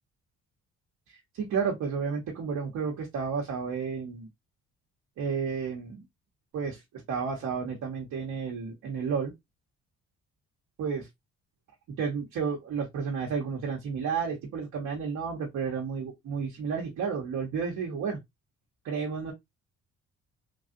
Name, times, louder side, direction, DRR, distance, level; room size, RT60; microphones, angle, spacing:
voice 1, 1.1-4.3 5.2-6.0 6.5-6.8 7.1-9.3 10.8-11.1 12.0-18.2 18.8-19.3, right 6 dB, 75° right, 1.0 m, -32 dB
3.4 x 2.4 x 2.6 m
cardioid pair, 90°, 30 cm